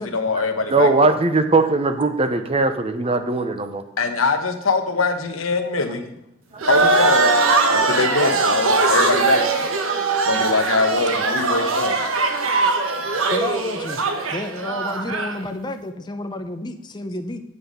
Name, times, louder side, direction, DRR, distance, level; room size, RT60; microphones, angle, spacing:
voice 1, 0.0-1.1 4.0-6.1 6.7-7.4 7.7-9.7 10.2-12.0, left 4 dB, 80° left, 6 dB, 1.2 m, -23 dB
voice 2, 0.7-3.8 6.5-6.6 10.1-10.2 12.6-12.7, right 3 dB, 30° right, 8 dB, 0.8 m, -20 dB
sound 1, 6.6-15.4, right 3 dB, 80° right, 1.2 m, -20 dB
voice 3, 12.5-12.8 13.3-14.1 14.3-17.4, left 1 dB, 20° left, 6 dB, 0.6 m, -30 dB
9.2 x 6.8 x 5.3 m, 0.81 s
head